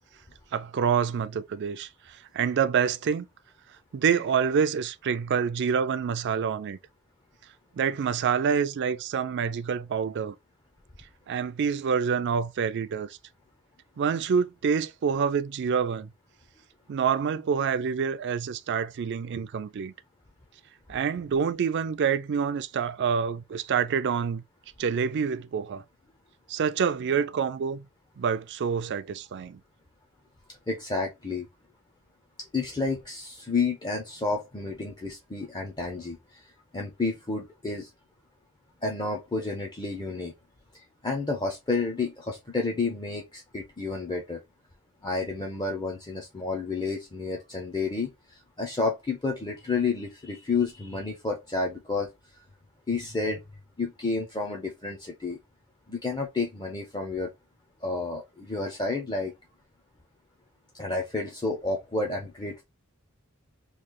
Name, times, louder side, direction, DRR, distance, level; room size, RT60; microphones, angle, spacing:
voice 1, 0.5-1.9 2.3-3.3 3.9-6.8 7.8-10.3 11.3-13.1 14.0-16.1 16.9-19.9 20.9-24.4 24.8-25.8 26.5-27.9 28.2-29.6, right 6 dB, 50° right, 0.3 m, -27 dB
voice 2, 30.7-31.5 32.5-36.4 36.7-37.9 38.8-40.3 40.7-44.4 45.0-52.1 52.9-53.4 53.8-55.4 55.9-57.3 57.8-59.3 60.8-62.6, left 3 dB, 20° left, 0.5 m, -30 dB
3.1 x 2.4 x 3.6 m
head